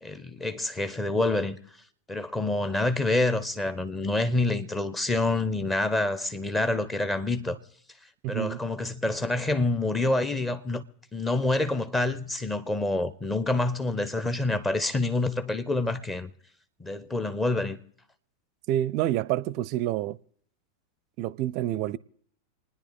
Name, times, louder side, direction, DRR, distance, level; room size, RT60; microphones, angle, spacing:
voice 1, 0.0-1.6 2.1-7.6 8.3-10.8 11.1-16.3 16.8-17.8, left 2 dB, 15° left, 1.0 m, -27 dB
voice 2, 8.2-8.6 18.7-20.2 21.2-22.0, right 13 dB, 45° right, 0.5 m, -28 dB
27.5 x 10.0 x 3.9 m
figure-of-eight pair, 90°, 0 cm